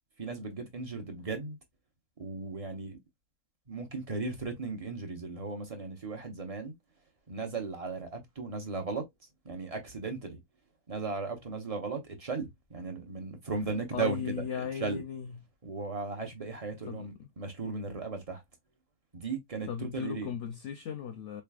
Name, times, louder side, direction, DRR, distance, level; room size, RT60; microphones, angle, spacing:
voice 1, 0.2-1.6 2.2-3.0 3.7-6.7 7.3-9.0 9.4-10.4 10.9-15.0 15.6-18.4 19.1-20.3, right 4 dB, 30° right, 0.9 m, -36 dB
voice 2, 13.9-15.4 16.9-17.1 19.7-21.4, left 8 dB, 65° left, 0.8 m, -36 dB
3.9 x 3.4 x 2.3 m
omnidirectional pair, 1.6 m